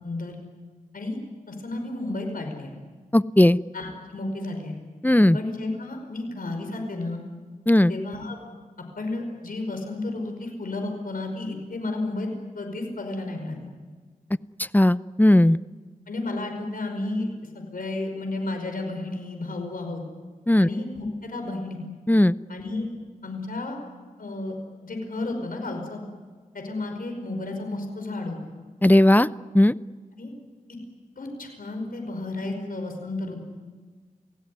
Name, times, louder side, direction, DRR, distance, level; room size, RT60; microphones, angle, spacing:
voice 1, 0.0-0.4 0.9-1.2 1.5-2.7 3.7-4.8 5.3-7.2 7.9-8.4 9.0-12.3 12.6-13.7 16.1-17.3 17.5-20.0 20.6-21.8 22.5-22.9 23.2-23.8 24.2-24.6 24.8-26.0 26.5-28.4 30.2-30.3 31.2-33.4, left 2 dB, 80° left, 4 dB, 5.4 m, -32 dB
voice 2, 3.1-3.6 5.0-5.4 7.7-7.9 14.7-15.6 20.5-20.7 22.1-22.4 28.8-29.3 29.5-29.7, left 1 dB, 10° left, 16 dB, 0.7 m, -17 dB
28.5 x 17.5 x 9.6 m, 1.4 s
cardioid pair, 55°, 15 cm